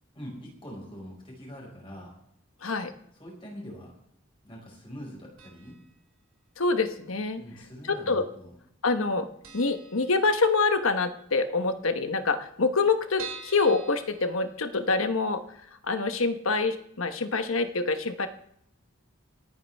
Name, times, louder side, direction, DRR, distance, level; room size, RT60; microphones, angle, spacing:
voice 1, 0.2-2.1 3.2-3.9 4.4-5.8 7.4-8.5, equal, 25° left, -2 dB, 5.2 m, -43 dB
voice 2, 2.6-2.9 6.6-7.4 7.9-8.3 8.8-9.3 9.5-15.4 15.8-18.3, left 3 dB, 85° left, 8 dB, 1.1 m, -26 dB
sound 1, 5.4-5.9 6.2-6.3 7.2-7.9 8.2-8.3 8.6-8.7 9.1-9.2 9.4-10.8 11.1-11.2 11.5-11.6 11.8-11.9 12.4-15.0 15.5-15.6 15.9-16.0, right 6 dB, 85° right, 2.6 m, -45 dB
28.0 x 9.6 x 3.5 m, 0.73 s
head